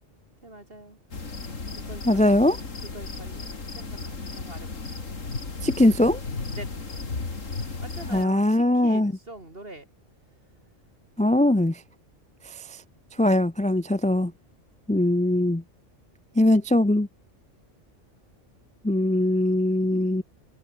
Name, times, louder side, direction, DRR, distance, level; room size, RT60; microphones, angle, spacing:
voice 1, 0.4-1.0 1.7-2.4 2.8-5.0 6.5-7.0 7.5-9.9, right 1 dB, 45° right, 5.5 m, -44 dB
sound 1, 1.1-8.3, left 3 dB, 85° left, 3.3 m, -35 dB
voice 2, 2.1-2.6 5.6-6.2 8.1-9.1 11.2-11.8 12.4-12.8 13.2-14.3 14.9-15.6 16.4-17.1 18.8-20.2, left 1 dB, 10° left, 0.5 m, -21 dB
omnidirectional pair, 1.3 m